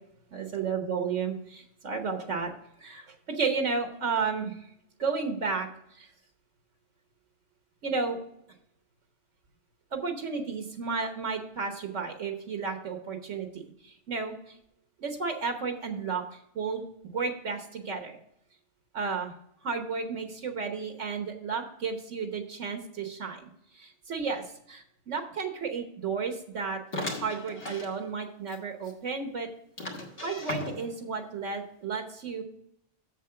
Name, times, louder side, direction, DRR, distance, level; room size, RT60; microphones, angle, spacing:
voice 1, 0.3-2.5 2.8-4.6 5.0-6.1 7.8-8.2 9.9-14.5 15.0-16.8 17.1-18.2 18.9-19.3 19.6-29.5 30.2-32.4, right 5 dB, 75° right, 5 dB, 1.4 m, -33 dB
sound 1, 26.9-27.9 28.5-28.6 28.8-28.9 29.8-31.0, left 1 dB, 50° left, 1.6 m, -36 dB
7.5 x 7.2 x 5.7 m, 0.76 s
omnidirectional pair, 1.3 m